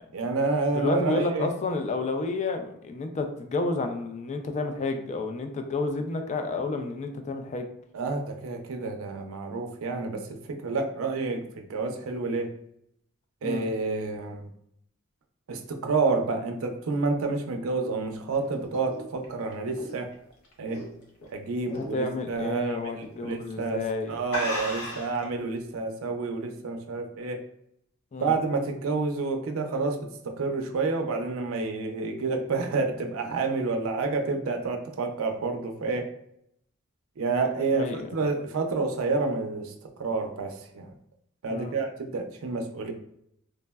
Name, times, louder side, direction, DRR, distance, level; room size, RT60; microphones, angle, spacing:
voice 1, 0.1-1.5 7.9-12.5 13.4-14.5 15.5-20.1 20.6-20.8 21.3-23.8 24.1-27.4 28.2-36.1 37.2-39.7 40.0-40.9 41.4-42.9, right 3 dB, 70° right, 5 dB, 0.4 m, -29 dB
voice 2, 0.7-7.7 13.4-13.7 21.7-24.2 28.1-28.3 37.7-38.1 41.5-41.7, left 3 dB, 35° left, 6 dB, 0.3 m, -30 dB
sound 1, 18.1-21.3 21.7-22.0 22.4-22.5 23.3-23.5 23.8-23.9 24.3-25.2, equal, 90° left, 0.7 m, -35 dB
3.3 x 2.0 x 2.2 m, 0.75 s
head